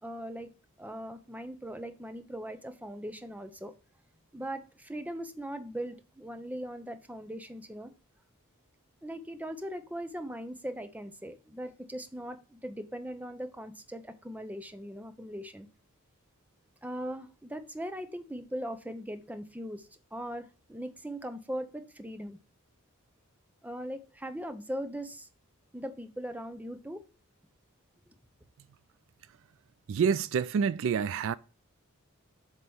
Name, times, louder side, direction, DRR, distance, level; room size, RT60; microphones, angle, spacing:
voice 1, 0.0-0.5 0.8-3.7 4.3-7.9 9.0-15.7 16.8-22.4 23.6-25.3 25.7-27.0, equal, 5° right, 0.6 m, -40 dB
voice 2, 29.9-31.3, right 6 dB, 60° right, 0.3 m, -27 dB
7.6 x 3.0 x 5.4 m
head